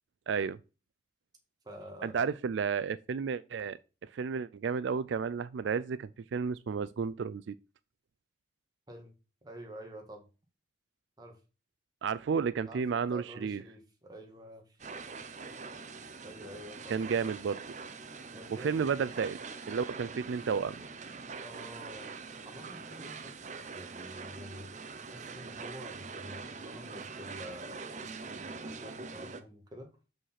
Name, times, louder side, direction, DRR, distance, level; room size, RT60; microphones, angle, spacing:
voice 1, 0.3-0.6 2.0-3.8 4.1-7.5 12.0-13.6 16.9-17.6 18.5-19.4 19.7-20.8, right 6 dB, 80° right, 0.4 m, -32 dB
voice 2, 1.6-2.3 8.9-9.1 9.4-10.3 11.2-11.4 12.7-14.8 16.2-17.2 18.3-18.9 21.4-22.1 22.4-24.7 25.1-30.0, equal, 20° right, 1.8 m, -48 dB
sound 1, 14.8-29.4, right 4 dB, 40° right, 0.7 m, -44 dB
6.5 x 5.2 x 5.7 m
head